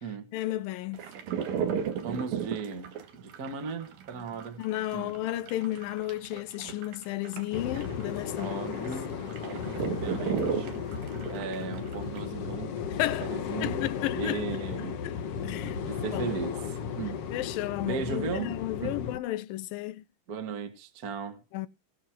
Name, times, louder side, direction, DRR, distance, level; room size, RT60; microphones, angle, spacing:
voice 1, 0.3-1.0 4.6-8.6 12.9-13.3 13.6-14.4 15.0-15.1 15.4-15.8 16.1-16.3 17.3-20.1 21.5-21.7, left 15 dB, 90° left, 2.5 m, -33 dB
sound 1, 0.9-12.2, right 7 dB, 85° right, 3.4 m, -35 dB
voice 2, 2.0-4.6 4.9-5.1 8.4-9.1 9.4-10.7 11.3-13.8 14.1-15.0 15.9-17.2 17.8-19.0 20.3-21.4, right 5 dB, 40° right, 1.5 m, -37 dB
sound 2, 7.5-19.2, left 7 dB, 65° left, 1.6 m, -35 dB
19.0 x 6.3 x 4.5 m
omnidirectional pair, 4.0 m